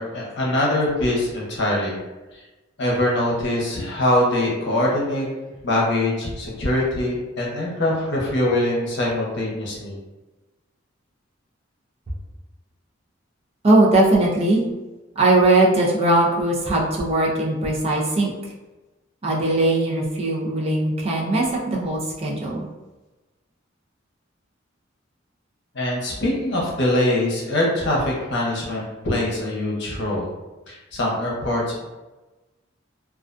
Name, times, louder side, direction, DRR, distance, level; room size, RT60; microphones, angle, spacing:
voice 1, 0.0-2.0 2.8-5.3 5.6-9.9 25.7-30.3 30.7-31.9, left 1 dB, 60° left, -3 dB, 0.7 m, -23 dB
voice 2, 13.6-14.6 15.2-18.3 19.2-22.7, right 2 dB, 30° right, -3 dB, 0.5 m, -19 dB
2.4 x 2.2 x 2.5 m, 1.1 s
head